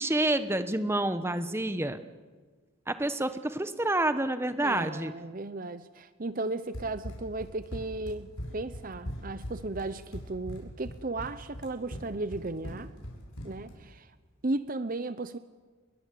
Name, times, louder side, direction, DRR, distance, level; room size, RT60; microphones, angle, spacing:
voice 1, 0.0-2.0 2.9-5.1, right 1 dB, 10° right, 10 dB, 1.1 m, -28 dB
voice 2, 4.6-12.9 13.4-14.1 14.4-15.4, right 2 dB, 40° right, 13 dB, 0.8 m, -35 dB
Run, 6.7-13.8, equal, 90° left, 7.8 m, -40 dB
30.0 x 22.5 x 8.5 m, 1.4 s
head